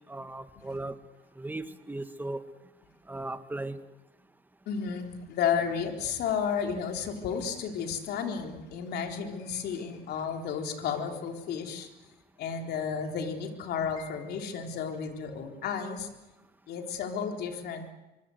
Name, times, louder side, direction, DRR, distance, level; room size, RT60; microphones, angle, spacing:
voice 1, 0.1-1.0 1.4-2.4 3.1-3.8, right 2 dB, 10° right, 9 dB, 1.8 m, -37 dB
voice 2, 4.7-11.9 12.4-16.1 16.7-17.9, left 7 dB, 70° left, 4 dB, 3.9 m, -32 dB
25.5 x 25.0 x 8.0 m, 1.0 s
cardioid pair, 110°, 17 cm